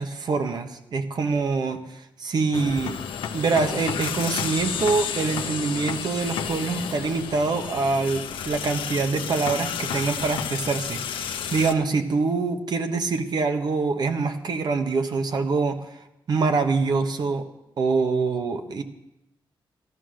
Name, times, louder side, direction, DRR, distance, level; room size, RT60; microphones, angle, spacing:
voice 1, 0.0-2.9 3.3-15.9 16.3-17.5 17.8-18.8, right 4 dB, 55° right, 7 dB, 1.2 m, -25 dB
sound 1, 2.5-11.7, left 7 dB, 90° left, 1.0 m, -31 dB
14.0 x 12.5 x 6.3 m, 0.86 s
wide cardioid pair, 115°, 9 cm